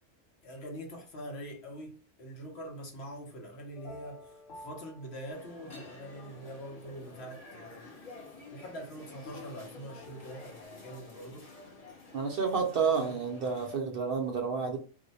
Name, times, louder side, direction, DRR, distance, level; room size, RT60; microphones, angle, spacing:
voice 1, 0.4-7.9 8.5-11.5 12.5-13.2, equal, 65° left, 1.1 m, -44 dB
sound 1, 3.7-5.9 6.4-7.5 9.2-10.7, left 2 dB, 90° left, 1.1 m, -52 dB
sound 2, 5.3-13.8, left 3 dB, 35° left, 0.8 m, -50 dB
voice 2, 12.1-14.8, right 5 dB, 60° right, 0.7 m, -30 dB
2.7 x 2.1 x 3.9 m
omnidirectional pair, 1.2 m